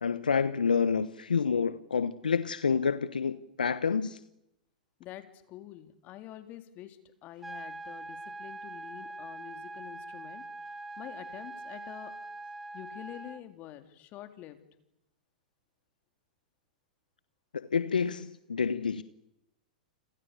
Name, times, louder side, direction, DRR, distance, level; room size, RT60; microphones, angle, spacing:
voice 1, 0.0-4.2 17.5-19.0, left 6 dB, 80° left, 1.1 m, -28 dB
voice 2, 5.0-12.1 12.7-14.6, left 13 dB, 35° left, 3.6 m, -47 dB
sound 1, 7.4-13.4, right 2 dB, 5° right, 1.1 m, -43 dB
30.0 x 26.5 x 7.0 m
figure-of-eight pair, 105°, 5 cm